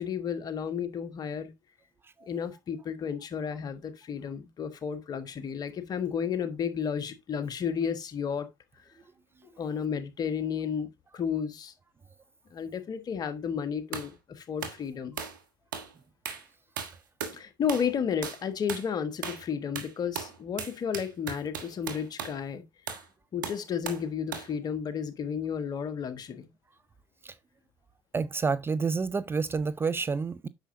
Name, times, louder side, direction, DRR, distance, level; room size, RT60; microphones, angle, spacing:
voice 1, 0.0-1.5 2.3-8.5 9.6-11.7 12.5-15.2 17.3-22.6 23.3-26.5, left 7 dB, 40° left, 1.3 m, -32 dB
sound 1, 13.9-14.1 14.6-14.8 15.2-15.4 15.7-15.9 16.2-16.5 16.8-17.4 17.7-17.9 18.2-18.4 18.7-18.9 19.2-19.5 19.7-22.4 22.9-23.1 23.4-24.1 24.3-24.5, right 7 dB, 75° right, 1.4 m, -37 dB
voice 2, 28.1-30.5, right 4 dB, 20° right, 0.5 m, -29 dB
8.9 x 6.2 x 2.6 m
figure-of-eight pair, 60°, 10 cm